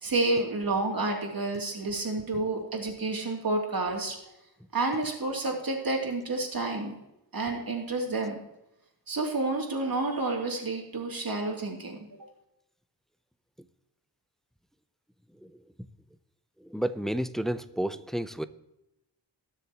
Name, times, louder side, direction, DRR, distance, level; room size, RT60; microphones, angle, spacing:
voice 1, 0.0-4.2 4.7-6.9 7.3-8.4 9.1-12.3, right 2 dB, 50° right, 0 dB, 2.9 m, -30 dB
voice 2, 16.7-18.4, right 1 dB, ahead, 13 dB, 0.5 m, -30 dB
20.5 x 7.2 x 3.0 m, 0.87 s
wide cardioid pair, 80°, 43 cm